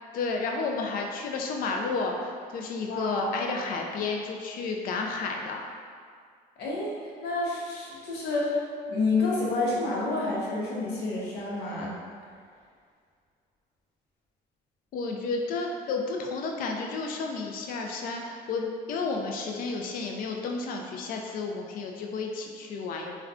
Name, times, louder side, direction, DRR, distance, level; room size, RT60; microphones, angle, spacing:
voice 1, 0.1-5.6 14.9-23.2, left 4 dB, 55° left, 1 dB, 0.4 m, -32 dB
voice 2, 2.9-3.3 6.6-8.6 8.9-12.0, left 3 dB, 80° left, -5 dB, 0.8 m, -29 dB
3.5 x 2.2 x 2.4 m, 2.1 s
cardioid pair, 110°, 17 cm